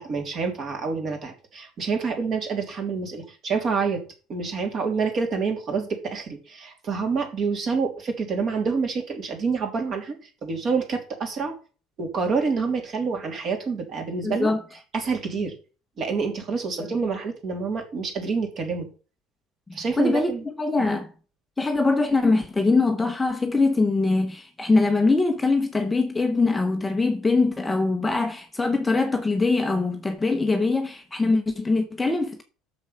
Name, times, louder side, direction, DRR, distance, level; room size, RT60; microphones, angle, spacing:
voice 1, 0.0-4.0 4.3-10.1 10.4-11.5 12.0-14.5 14.9-15.5 16.0-18.9 19.7-20.4 20.8-20.9, right 5 dB, 35° right, 2.9 m, -27 dB
voice 2, 14.2-14.6 16.8-16.9 20.0-21.1 21.6-32.4, left 3 dB, 10° left, 0.8 m, -22 dB
8.0 x 6.9 x 5.6 m
cardioid pair, 150°, 0 cm